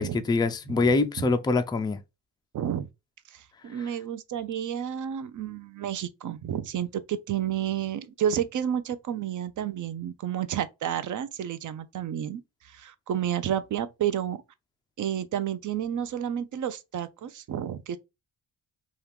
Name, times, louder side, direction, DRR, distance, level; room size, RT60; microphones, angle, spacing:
voice 1, 0.0-2.0 3.7-3.8, left 3 dB, 10° left, 0.3 m, -25 dB
voice 2, 2.5-2.9 3.3-14.4 15.0-18.0, right 10 dB, 40° right, 0.5 m, -31 dB
2.8 x 2.4 x 3.3 m
supercardioid pair, 70°, 48 cm